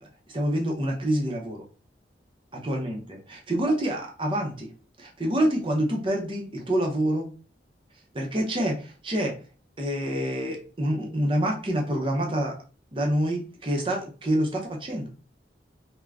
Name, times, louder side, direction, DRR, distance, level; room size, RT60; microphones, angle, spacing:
voice 1, 0.3-1.6 2.6-3.0 3.3-4.7 5.0-7.3 8.1-9.3 9.8-12.5 12.9-15.1, right 1 dB, 30° right, 0 dB, 0.6 m, -27 dB
2.4 x 2.1 x 3.3 m, 0.37 s
head